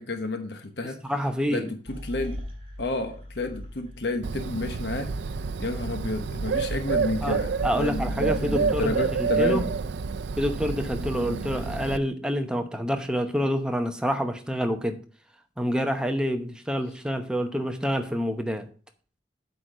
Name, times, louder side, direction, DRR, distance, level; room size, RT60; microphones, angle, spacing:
voice 1, 0.0-1.0 1.5-2.4 2.8-5.1 5.6-9.6 11.1-11.4, left 2 dB, 70° left, 1.1 m, -31 dB
voice 2, 1.0-1.7 7.2-7.4 7.6-9.6 10.4-15.0 15.6-18.7, equal, 5° right, 0.8 m, -27 dB
sound 1, 1.9-8.4, left 1 dB, 30° right, 4.3 m, -41 dB
Bird, 4.2-12.0, right 5 dB, 75° right, 0.5 m, -29 dB
8.3 x 4.6 x 6.6 m
head